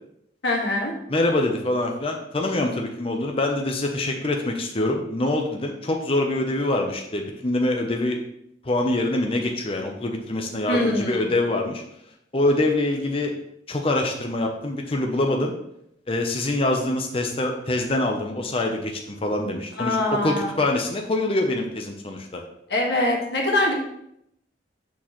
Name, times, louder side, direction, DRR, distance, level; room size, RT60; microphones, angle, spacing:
voice 1, 0.4-0.9 10.7-11.2 19.8-20.5 22.7-23.7, left 1 dB, 65° left, -1 dB, 1.6 m, -23 dB
voice 2, 1.1-8.2 8.6-11.8 12.3-13.3 13.7-15.5 16.1-22.4, left 2 dB, 30° left, 2 dB, 0.6 m, -25 dB
6.2 x 6.2 x 3.1 m, 0.76 s
head